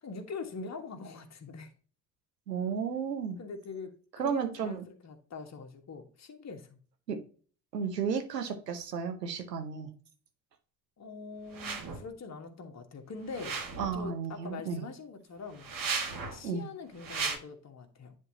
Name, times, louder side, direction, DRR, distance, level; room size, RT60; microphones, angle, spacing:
voice 1, 0.0-1.7 3.4-6.8 11.0-13.6 13.9-15.7 16.3-18.2, left 4 dB, 35° left, 1.5 m, -43 dB
voice 2, 2.5-3.4 4.2-4.8 7.1-7.2 7.7-9.9 13.8-14.8 16.4-16.6, right 6 dB, 90° right, 0.9 m, -33 dB
sound 1, 11.5-12.0 13.3-14.0 15.5-16.4 17.0-17.4, right 4 dB, 45° right, 1.7 m, -35 dB
10.0 x 3.7 x 2.8 m
figure-of-eight pair, 55°, 48 cm